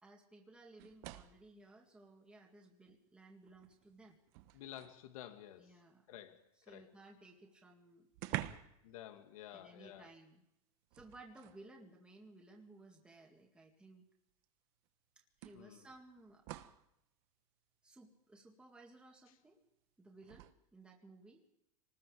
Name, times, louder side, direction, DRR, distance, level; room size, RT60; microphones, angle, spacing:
voice 1, 0.0-4.2 5.6-6.1 6.7-8.6 9.5-10.4 10.9-14.0 15.4-16.4 17.8-19.6 20.0-21.4, right 2 dB, 5° right, 0 dB, 2.1 m, -59 dB
sound 1, 0.8-1.5 2.9-3.0 3.5-5.1 7.1-7.2 7.5-7.6 8.1-8.9 9.2-9.4 10.9-11.7 12.8-12.9 14.4-14.5 15.4-16.9 20.2-20.5, right 15 dB, 45° right, 1.2 m, -47 dB
voice 2, 4.5-5.8 6.1-6.9 8.8-10.1 15.5-15.9 19.3-19.4, left 11 dB, 75° left, 6 dB, 2.2 m, -52 dB
26.5 x 20.0 x 5.1 m, 0.82 s
supercardioid pair, 175°, 18 cm